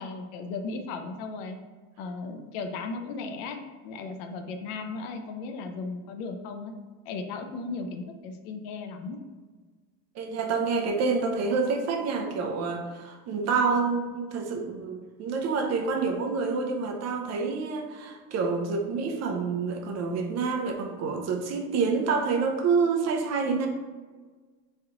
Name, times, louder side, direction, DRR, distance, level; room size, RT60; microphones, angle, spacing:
voice 1, 0.0-1.6 2.0-6.7 7.1-9.2, left 4 dB, 80° left, 6 dB, 0.6 m, -36 dB
voice 2, 10.2-23.7, right 4 dB, 50° right, 3 dB, 0.6 m, -27 dB
3.6 x 3.2 x 2.9 m, 1.4 s
cardioid pair, 140°, 34 cm